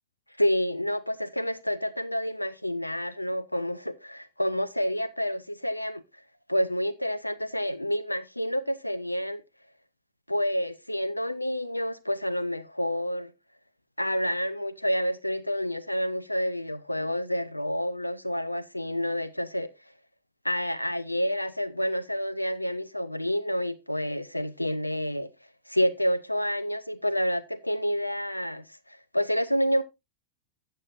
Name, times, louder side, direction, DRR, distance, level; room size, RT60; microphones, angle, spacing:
voice 1, 0.4-6.0 6.5-9.4 10.3-13.3 14.0-19.7 20.4-25.3 25.7-29.8, equal, 85° left, 0.4 m, -29 dB
13.5 x 7.6 x 2.5 m
figure-of-eight pair, 90°, 0 cm